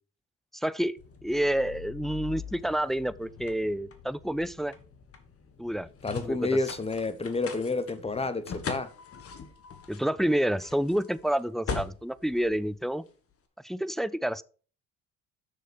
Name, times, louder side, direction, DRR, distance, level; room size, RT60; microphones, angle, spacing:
voice 1, 0.5-4.8 5.6-5.9 6.2-6.4 9.9-13.0 13.6-14.4, right 1 dB, ahead, 0.3 m, -29 dB
sound 1, 1.0-13.3, left 5 dB, 45° left, 1.6 m, -42 dB
voice 2, 6.0-8.9, left 3 dB, 20° left, 1.0 m, -29 dB
6.9 x 6.3 x 5.1 m
supercardioid pair, 85°, 33 cm